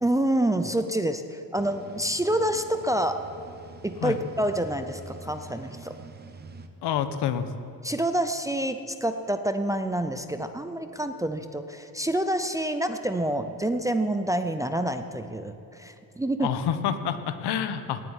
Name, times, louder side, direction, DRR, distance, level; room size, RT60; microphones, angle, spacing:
voice 1, 0.0-3.3 3.8-6.0 7.8-16.5, right 1 dB, 10° right, 7 dB, 0.4 m, -27 dB
sound 1, 1.5-6.7, right 3 dB, 25° right, 0.9 m, -45 dB
voice 2, 6.8-7.5 16.4-18.0, left 9 dB, 80° left, 10 dB, 1.2 m, -28 dB
18.0 x 7.8 x 9.8 m, 2.8 s
cardioid pair, 165°, 39 cm